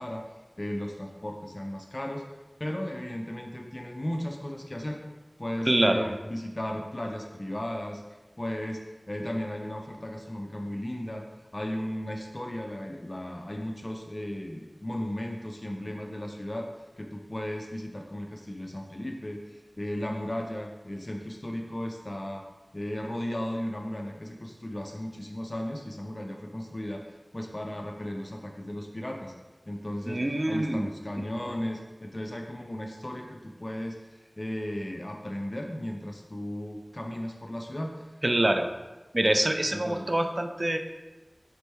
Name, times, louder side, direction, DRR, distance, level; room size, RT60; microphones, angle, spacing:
voice 1, 0.0-2.2 2.6-5.0 5.4-8.0 8.4-11.3 11.5-16.7 17.0-22.4 22.7-29.3 29.7-38.1 39.7-40.1, left 1 dB, 45° left, 2 dB, 0.4 m, -35 dB
voice 2, 5.7-6.1 30.1-30.9 38.2-38.7 39.1-40.8, right 1 dB, 50° right, 6 dB, 0.3 m, -25 dB
5.1 x 3.2 x 3.1 m, 1.2 s
wide cardioid pair, 45°, 0 cm